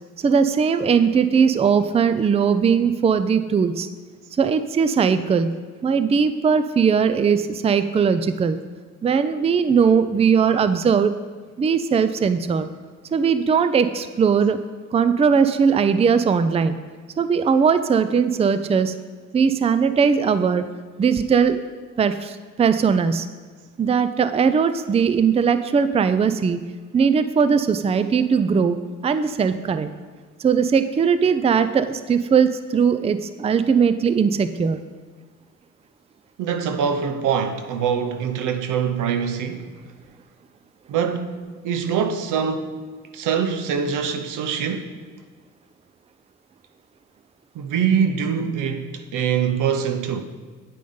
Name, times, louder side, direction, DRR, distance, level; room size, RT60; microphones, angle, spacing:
voice 1, 0.2-3.9 4.4-5.5 5.8-8.6 9.0-11.1 11.6-12.7 13.1-14.6 14.9-16.7 17.2-18.9 19.3-20.7 21.0-21.6 22.0-23.3 23.8-26.6 26.9-28.8 29.0-29.9 30.4-34.8, right 6 dB, 20° right, 0.4 m, -19 dB
voice 2, 36.4-39.7 40.9-42.7 43.1-45.0 47.5-50.2, right 7 dB, 85° right, 0.8 m, -24 dB
9.3 x 5.0 x 5.5 m
cardioid pair, 90°, 30 cm